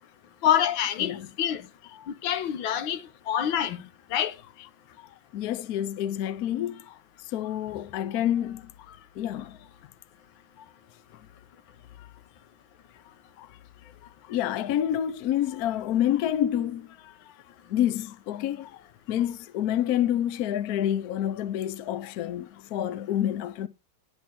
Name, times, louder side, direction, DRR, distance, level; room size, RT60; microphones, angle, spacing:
voice 1, 0.4-1.1 1.4-1.6 2.1-3.0 3.3-3.8 4.1-4.3, left 10 dB, 85° left, 1.7 m, -25 dB
voice 2, 5.3-7.0 7.3-9.6 13.4-13.5 14.2-17.3 17.7-23.7, left 11 dB, 65° left, 1.0 m, -28 dB
11.5 x 8.7 x 4.3 m
omnidirectional pair, 2.1 m